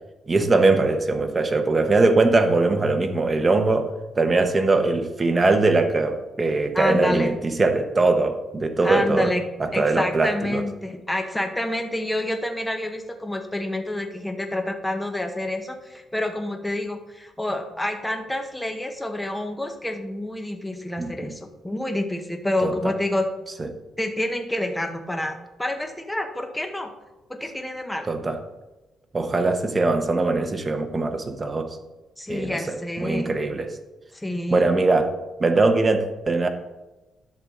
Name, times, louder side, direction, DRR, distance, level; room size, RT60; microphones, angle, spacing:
voice 1, 0.3-9.3 9.6-10.6 21.0-21.3 22.6-22.7 23.6-23.7 28.1-28.4 29.1-31.8 32.3-33.8 34.5-35.1 35.4-36.5, right 3 dB, 20° right, 5 dB, 0.9 m, -21 dB
voice 2, 6.7-7.4 8.8-23.3 24.0-26.9 27.3-28.1 32.2-33.4 34.1-34.7, left 1 dB, 5° left, 4 dB, 0.8 m, -28 dB
11.0 x 6.8 x 3.7 m, 1.0 s
cardioid pair, 135°, 0 cm